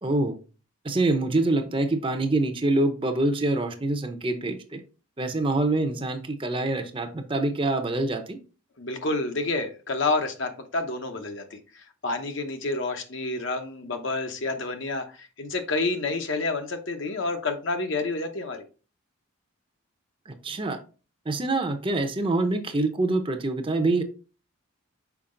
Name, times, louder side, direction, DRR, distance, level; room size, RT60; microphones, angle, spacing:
voice 1, 0.0-0.4 0.8-4.8 5.2-8.4 20.3-20.8 21.3-24.0, right 2 dB, 25° right, 6 dB, 0.6 m, -25 dB
voice 2, 8.8-18.6, left 3 dB, 55° left, 6 dB, 0.9 m, -29 dB
5.8 x 4.7 x 3.7 m, 0.36 s
head